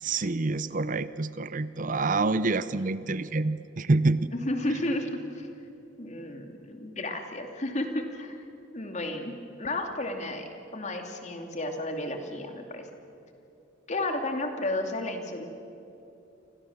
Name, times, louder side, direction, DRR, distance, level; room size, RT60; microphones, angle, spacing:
voice 1, 0.0-4.3, right 3 dB, 40° right, 14 dB, 0.6 m, -27 dB
voice 2, 4.3-5.5 6.0-8.4 8.7-12.9 13.9-15.4, left 1 dB, 35° left, 4 dB, 2.6 m, -32 dB
30.0 x 25.0 x 7.3 m, 2.9 s
head